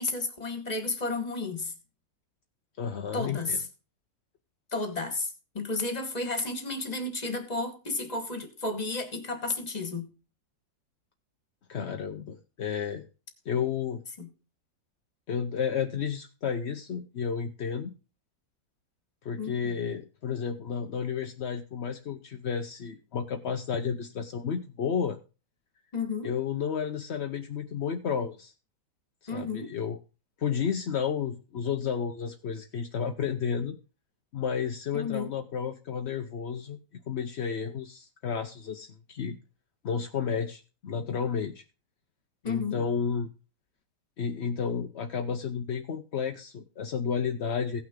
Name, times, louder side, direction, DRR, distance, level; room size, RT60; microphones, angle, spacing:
voice 1, 0.0-1.7 3.1-3.6 4.7-10.1 14.2-14.3 19.4-19.7 25.9-26.3 29.3-29.7 34.9-35.3 42.4-42.8, left 3 dB, 25° left, 1.5 m, -32 dB
voice 2, 2.8-3.6 11.7-13.0 13.5-14.0 15.3-17.9 19.2-25.2 26.2-28.5 29.3-30.0 30.4-33.8 34.3-36.8 37.1-39.4 39.8-41.6 42.4-43.3 44.2-47.8, left 7 dB, 55° left, 0.7 m, -32 dB
16.5 x 6.0 x 3.7 m
omnidirectional pair, 2.0 m